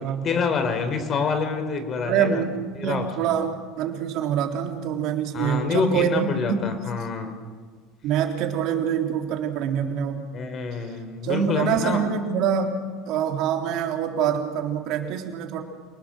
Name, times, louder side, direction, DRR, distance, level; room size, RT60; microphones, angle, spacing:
voice 1, 0.0-2.4 2.8-3.4 5.3-7.3 10.3-12.0, left 5 dB, 40° left, 8 dB, 4.1 m, -27 dB
voice 2, 2.0-2.6 2.8-6.8 8.0-10.3 11.2-12.8 13.1-15.6, right 8 dB, 60° right, 3 dB, 3.6 m, -25 dB
28.0 x 20.0 x 6.5 m, 1.5 s
hypercardioid pair, 80°, 0 cm